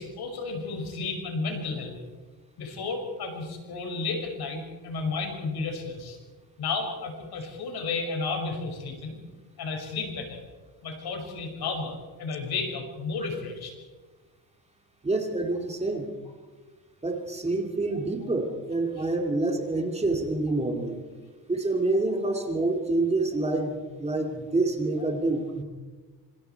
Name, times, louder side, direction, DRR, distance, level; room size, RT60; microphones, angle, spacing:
voice 1, 0.0-2.0 2.6-6.2 6.6-9.2 9.6-10.4 10.8-13.7 22.3-22.4, left 4 dB, 85° left, 2 dB, 6.1 m, -32 dB
voice 2, 15.0-16.1 17.0-21.0 21.5-25.6, right 2 dB, 15° right, 3 dB, 2.4 m, -27 dB
27.0 x 26.5 x 4.6 m, 1.3 s
wide cardioid pair, 170°, 37 cm